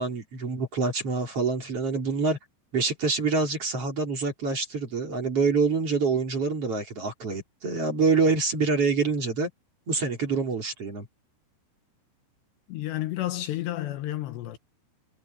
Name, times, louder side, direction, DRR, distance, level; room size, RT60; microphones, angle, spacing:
voice 1, 0.0-2.4 2.7-9.5 9.9-11.1, right 4 dB, 30° right, 4.0 m, -26 dB
voice 2, 12.7-14.6, left 14 dB, 70° left, 2.9 m, -31 dB
omnidirectional pair, 5.8 m